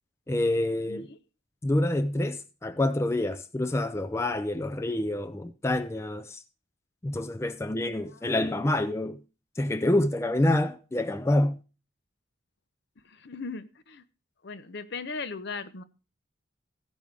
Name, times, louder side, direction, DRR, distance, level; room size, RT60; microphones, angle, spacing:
voice 1, 0.3-1.1 1.6-6.4 7.0-9.2 9.6-11.6, left 1 dB, 15° left, 0.4 m, -27 dB
voice 2, 13.1-14.0 14.4-15.8, left 4 dB, 60° left, 0.8 m, -37 dB
15.5 x 5.4 x 4.7 m
head